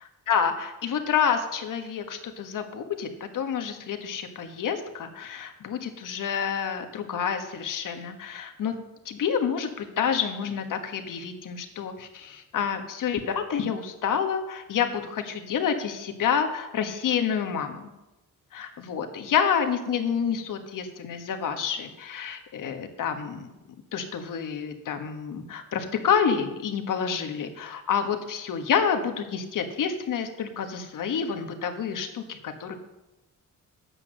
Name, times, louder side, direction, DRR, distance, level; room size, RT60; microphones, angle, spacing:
voice 1, 0.3-8.7 9.0-17.9 18.5-23.5 23.9-32.7, left 7 dB, 70° left, 6 dB, 1.6 m, -28 dB
9.7 x 8.4 x 6.5 m, 0.98 s
cardioid pair, 75°, 34 cm